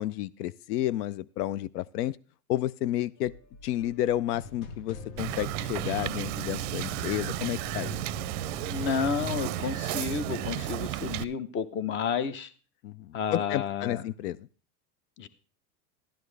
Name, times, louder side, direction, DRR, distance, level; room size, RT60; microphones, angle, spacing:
voice 1, 0.0-2.2 2.5-3.3 3.6-8.0 12.8-14.5, left 13 dB, 80° left, 18 dB, 0.5 m, -31 dB
sound 1, 3.2-11.0, left 5 dB, 65° left, 1.4 m, -44 dB
Wind / Boat Water vehicle, 5.2-11.2, right 17 dB, 55° right, 0.5 m, -33 dB
voice 2, 8.6-12.5 13.1-14.0 15.2-15.3, left 6 dB, 25° left, 15 dB, 0.7 m, -31 dB
11.5 x 11.0 x 3.3 m, 0.37 s
supercardioid pair, 125°, 46 cm